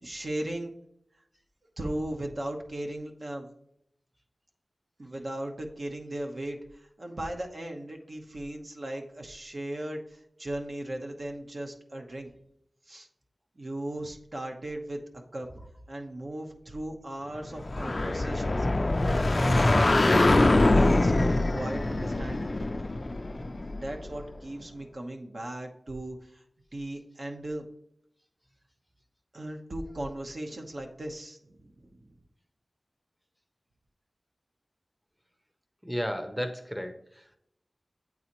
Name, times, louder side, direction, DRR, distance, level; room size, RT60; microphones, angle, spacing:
voice 1, 0.0-0.7 1.8-3.5 5.0-12.3 12.9-13.1 13.6-15.5 15.9-22.5 23.8-26.4 26.7-27.6 29.3-32.1, right 1 dB, 65° right, 2 dB, 0.9 m, -37 dB
sound 1, 17.6-24.2, left 2 dB, 50° left, 0.3 m, -24 dB
voice 2, 35.8-37.4, equal, 5° right, 8 dB, 0.6 m, -34 dB
8.5 x 4.0 x 2.9 m, 0.75 s
cardioid pair, 45°, 0 cm